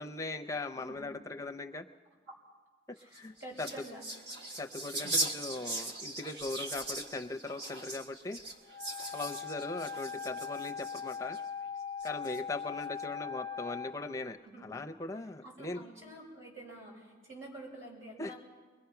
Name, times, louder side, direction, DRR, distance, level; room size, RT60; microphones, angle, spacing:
voice 1, 0.0-1.8 2.9-3.7 4.6-8.4 9.1-11.4 12.0-15.8 18.2-18.3, left 2 dB, 15° left, 6 dB, 0.5 m, -39 dB
sound 1, 3.0-11.4 12.0-12.6, right 2 dB, 55° right, 1.7 m, -39 dB
voice 2, 3.0-4.0 14.4-14.7 15.4-18.4, right 1 dB, 90° right, -2 dB, 6.7 m, -48 dB
Wind instrument woodwind instrument, 8.6-13.9, left 6 dB, 25° right, 1.1 m, -40 dB
22.0 x 22.0 x 5.8 m, 1.4 s
head